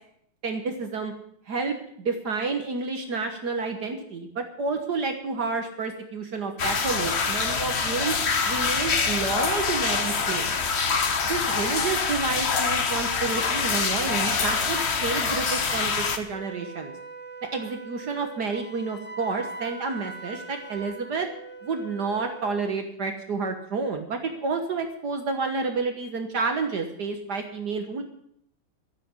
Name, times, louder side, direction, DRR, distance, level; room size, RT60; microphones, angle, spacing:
voice 1, 0.4-1.1 1.5-8.1 8.4-10.6 11.3-16.9 17.5-21.3 21.6-28.0, right 4 dB, 55° right, 5 dB, 1.8 m, -30 dB
sound 1, 6.6-16.2, left 5 dB, 40° left, 1.2 m, -25 dB
Wind instrument woodwind instrument, 16.3-22.6, right 3 dB, 10° left, 0.6 m, -41 dB
13.5 x 7.8 x 9.6 m, 0.70 s
omnidirectional pair, 2.2 m